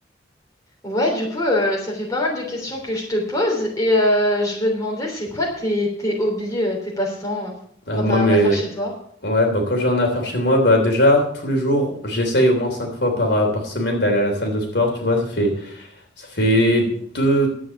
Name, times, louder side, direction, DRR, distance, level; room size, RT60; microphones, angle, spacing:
voice 1, 0.8-7.5 7.9-8.9, left 1 dB, 20° left, -2 dB, 3.3 m, -23 dB
voice 2, 7.9-8.6 9.2-15.9 16.2-17.5, equal, 65° left, 1 dB, 3.3 m, -19 dB
11.0 x 8.3 x 7.2 m, 0.62 s
head